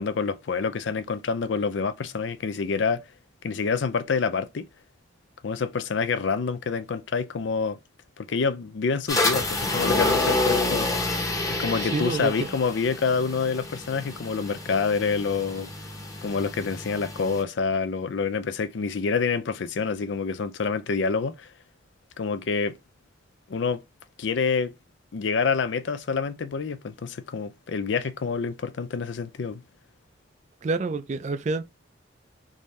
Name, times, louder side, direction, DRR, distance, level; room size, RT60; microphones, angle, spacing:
voice 1, 0.0-3.0 3.4-4.7 5.4-7.8 8.2-10.9 11.5-15.7 16.2-21.5 22.2-22.8 23.5-23.8 24.2-24.7 25.1-29.6, left 5 dB, 70° left, 0.4 m, -27 dB
sound 1, 9.1-17.4, left 2 dB, 15° left, 0.8 m, -28 dB
voice 2, 11.8-12.5 30.6-31.6, right 3 dB, 40° right, 0.4 m, -28 dB
3.6 x 2.7 x 3.1 m
head